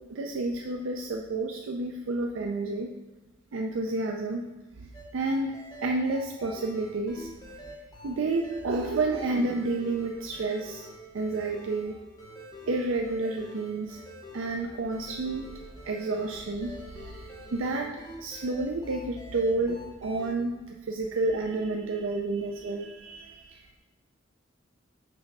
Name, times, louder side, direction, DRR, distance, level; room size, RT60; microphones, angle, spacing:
voice 1, 0.0-2.9 3.5-4.5 4.8-7.3 8.0-10.9 11.1-12.0 12.7-14.0 14.3-15.5 15.8-23.8, right 2 dB, 85° right, 1 dB, 0.5 m, -30 dB
sound 1, 4.9-20.3, equal, 20° left, 1.3 m, -46 dB
6.0 x 3.4 x 5.4 m, 1.1 s
head